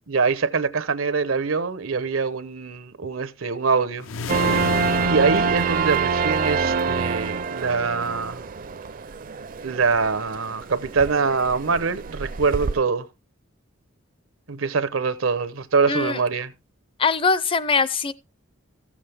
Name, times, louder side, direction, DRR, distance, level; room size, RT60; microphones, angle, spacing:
voice 1, 0.1-4.1 5.0-8.4 9.6-13.1 14.5-16.5, right 4 dB, 90° right, 0.9 m, -24 dB
sound 1, 4.0-6.6, left 4 dB, 80° left, 0.7 m, -32 dB
sound 2, 4.3-12.8, right 5 dB, 45° right, 0.4 m, -26 dB
voice 2, 15.9-16.2 17.0-18.1, left 4 dB, 25° left, 0.5 m, -22 dB
14.5 x 7.4 x 3.4 m
head